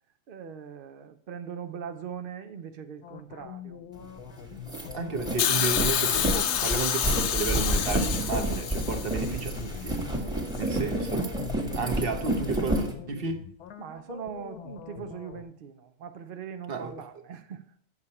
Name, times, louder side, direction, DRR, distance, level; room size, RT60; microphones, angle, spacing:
voice 1, 0.3-3.8 10.2-10.8 13.8-17.7, right 7 dB, 70° right, 0.5 m, -41 dB
sound 1, 3.0-15.4, left 9 dB, 75° left, 1.3 m, -43 dB
sound 2, 4.1-4.2 4.5-12.9, right 1 dB, 5° right, 1.3 m, -30 dB
voice 2, 4.9-10.0 10.6-11.3 11.8-13.4 16.7-16.9, right 4 dB, 40° right, 1.0 m, -32 dB
Hiss, 5.4-9.5 10.5-10.6, left 9 dB, 60° left, 0.8 m, -28 dB
8.4 x 6.7 x 4.2 m
omnidirectional pair, 1.7 m